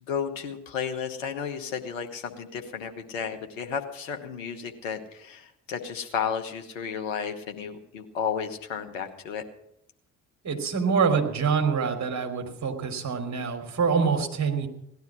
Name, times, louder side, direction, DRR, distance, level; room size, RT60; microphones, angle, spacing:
voice 1, 0.1-9.4, left 7 dB, 85° left, 5 dB, 1.3 m, -33 dB
voice 2, 10.4-14.7, right 5 dB, 45° right, 4 dB, 3.3 m, -25 dB
17.5 x 12.0 x 6.2 m, 0.78 s
hypercardioid pair, 45°, 37 cm